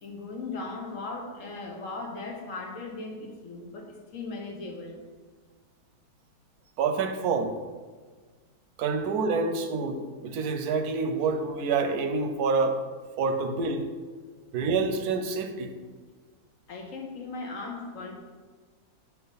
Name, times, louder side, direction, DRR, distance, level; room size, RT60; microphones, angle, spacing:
voice 1, 0.0-5.0 14.3-14.4 16.7-18.2, left 3 dB, 60° left, 1 dB, 1.3 m, -38 dB
voice 2, 6.8-7.5 8.8-12.8 13.2-13.9 14.5-15.7, right 4 dB, 90° right, 7 dB, 1.2 m, -27 dB
5.9 x 5.9 x 4.0 m, 1.5 s
omnidirectional pair, 1.6 m